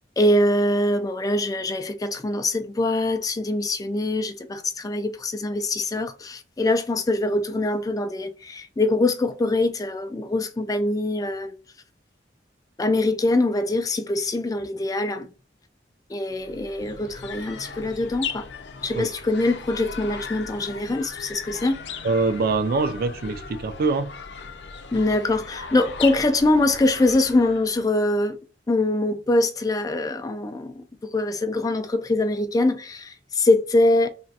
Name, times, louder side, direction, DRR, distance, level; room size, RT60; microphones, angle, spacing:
voice 1, 0.2-11.5 12.8-15.3 16.1-18.5 18.8-22.0 24.9-28.4 28.7-34.1, left 2 dB, 20° left, 0.3 m, -23 dB
sound 1, 16.3-27.9, left 5 dB, 70° left, 0.5 m, -37 dB
voice 2, 22.0-24.1, right 3 dB, 55° right, 0.4 m, -24 dB
3.3 x 2.4 x 2.7 m
head